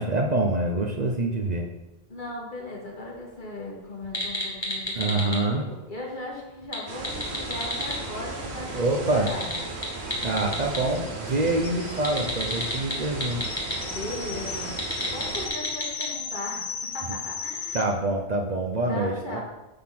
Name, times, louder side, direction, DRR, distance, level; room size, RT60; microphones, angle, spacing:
voice 1, 0.0-1.7 5.0-5.6 8.7-9.3 10.2-13.4 17.7-19.4, right 2 dB, 45° right, 1 dB, 0.8 m, -26 dB
voice 2, 2.1-9.7 13.8-14.7 15.1-17.9 18.9-19.4, left 1 dB, 50° left, -4 dB, 2.2 m, -37 dB
sound 1, 4.0-5.4 6.6-8.0 9.1-10.8 12.0-13.8 14.7-16.1, left 1 dB, 25° left, 1.6 m, -30 dB
sound 2, 6.9-15.5, right 3 dB, 85° right, 1.4 m, -36 dB
sound 3, 8.1-8.2 8.5-8.6 8.8-17.8, left 6 dB, 70° left, 1.0 m, -37 dB
8.5 x 4.0 x 5.9 m, 1.0 s
omnidirectional pair, 1.1 m